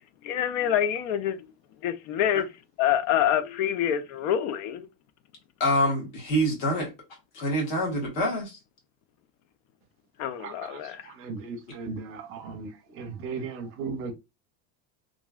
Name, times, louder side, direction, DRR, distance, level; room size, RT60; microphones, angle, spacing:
voice 1, 0.2-1.5 1.8-2.5 2.8-4.9 10.2-11.0, left 10 dB, 80° left, 0.6 m, -26 dB
voice 2, 5.6-6.9 7.3-8.6, equal, 50° left, 1.5 m, -26 dB
voice 3, 10.4-14.1, right 4 dB, 35° right, 0.5 m, -37 dB
2.9 x 2.6 x 2.3 m
cardioid pair, 160°, 41 cm